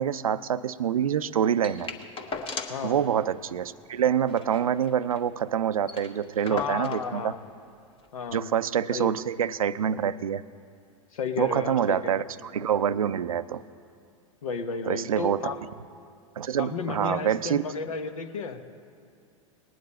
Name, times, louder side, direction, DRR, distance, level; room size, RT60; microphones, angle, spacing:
voice 1, 0.0-1.9 2.8-7.3 8.3-10.4 11.4-13.6 14.9-15.5 16.4-17.6, right 9 dB, 85° right, 16 dB, 0.4 m, -26 dB
sound 1, 1.6-2.9 3.2-3.3 3.6-3.8 4.2-5.3 5.6-5.7 5.8-7.1 8.0-8.1, left 3 dB, 30° left, 1.2 m, -38 dB
voice 2, 6.5-7.4 8.1-8.5 8.9-9.1 11.1-12.2 14.4-15.6 16.6-18.6, left 5 dB, 75° left, 9 dB, 0.9 m, -33 dB
19.5 x 9.4 x 4.3 m, 2.3 s
hypercardioid pair, 100°, 18 cm